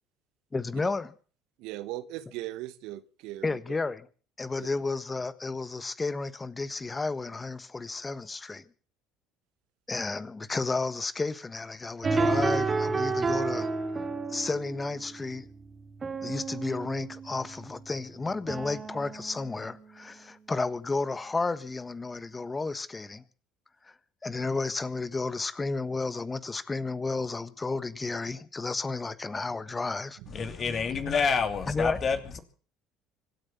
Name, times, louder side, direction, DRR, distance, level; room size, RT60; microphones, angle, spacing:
voice 1, 0.5-1.1 3.4-4.1 4.4-8.6 9.9-13.7 14.3-15.5 16.2-23.2 23.8-23.9 24.2-30.2 31.7-32.0, left 3 dB, 20° left, 1.4 m, -32 dB
voice 2, 1.6-3.8 4.6-4.7 30.2-30.6, right 15 dB, 65° right, 1.0 m, -39 dB
sound 1, 12.0-20.2, right 3 dB, 30° right, 2.4 m, -32 dB
voice 3, 30.3-32.4, left 5 dB, 40° left, 2.8 m, -28 dB
25.5 x 8.8 x 5.8 m
hypercardioid pair, 65°, 0 cm